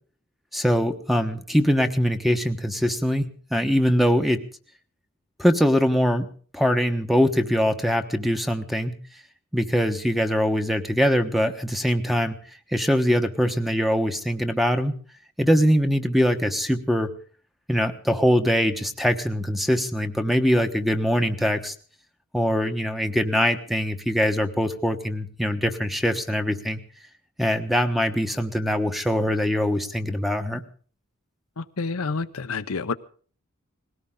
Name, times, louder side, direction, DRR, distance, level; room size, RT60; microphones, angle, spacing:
voice 1, 0.5-4.4 5.4-6.3 6.5-9.0 9.5-12.4 12.7-15.0 15.4-17.1 17.7-21.7 22.3-26.8 27.4-30.6, equal, ahead, 7 dB, 1.2 m, -22 dB
voice 2, 31.6-32.9, left 4 dB, 75° left, 10 dB, 0.8 m, -29 dB
20.0 x 17.5 x 3.8 m, 0.43 s
head